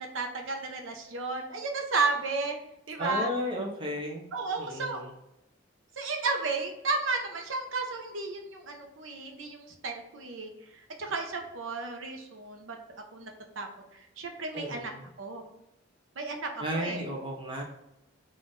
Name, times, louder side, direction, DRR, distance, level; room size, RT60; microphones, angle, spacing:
voice 1, 0.0-2.6 2.9-3.3 4.3-5.0 6.0-12.8 13.1-13.3 13.6-13.7 14.2-14.9 15.2-15.4 16.2-17.0, right 3 dB, 70° right, 3 dB, 0.7 m, -33 dB
voice 2, 3.0-4.3 4.6-5.1 14.5-14.9 16.6-17.6, equal, 25° right, 0 dB, 0.6 m, -33 dB
3.8 x 2.5 x 3.7 m, 0.88 s
head